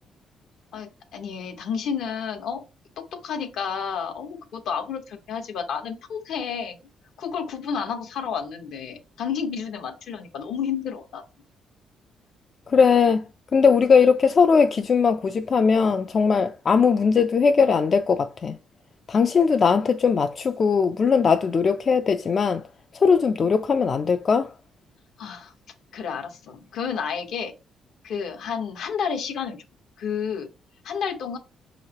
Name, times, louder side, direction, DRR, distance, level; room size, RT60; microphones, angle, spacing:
voice 1, 0.7-2.6 3.0-6.8 7.2-11.2 25.2-25.5 25.9-27.5 28.0-29.6 30.0-30.5 30.8-31.4, left 7 dB, 75° left, 0.8 m, -31 dB
voice 2, 12.7-13.2 13.5-18.6 19.1-22.6 23.0-24.5, left 5 dB, 45° left, 0.3 m, -19 dB
5.7 x 3.0 x 2.8 m
cardioid pair, 90°, 0 cm